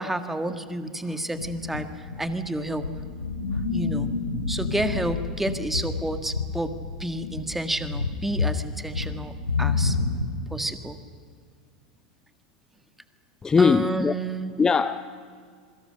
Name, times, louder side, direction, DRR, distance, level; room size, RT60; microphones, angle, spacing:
voice 1, 0.0-2.8 3.7-4.1 4.5-6.7 7.0-9.3 9.6-10.0 10.5-11.0 13.6-14.6, right 1 dB, 5° right, 9 dB, 1.7 m, -30 dB
sound 1, 1.3-10.5, left 4 dB, 85° left, 2.8 m, -29 dB
voice 2, 13.4-14.2 14.6-15.0, left 5 dB, 15° left, 13 dB, 0.6 m, -20 dB
27.5 x 23.0 x 6.5 m, 2.1 s
figure-of-eight pair, 85°, 4 cm